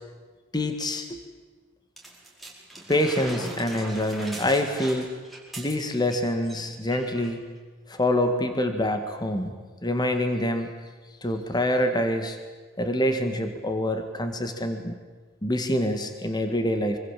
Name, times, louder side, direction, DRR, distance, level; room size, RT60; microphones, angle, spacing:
voice 1, 0.5-1.2 2.9-5.1 5.6-7.4 7.9-9.6 9.8-10.7 11.2-12.4 12.8-15.0 15.4-17.0, left 1 dB, 20° left, 6 dB, 2.0 m, -26 dB
sound 1, 2.0-6.2 6.4-6.6 6.9-7.3 8.1-8.2, right 2 dB, ahead, 4.8 m, -40 dB
25.5 x 24.5 x 7.6 m, 1.4 s
head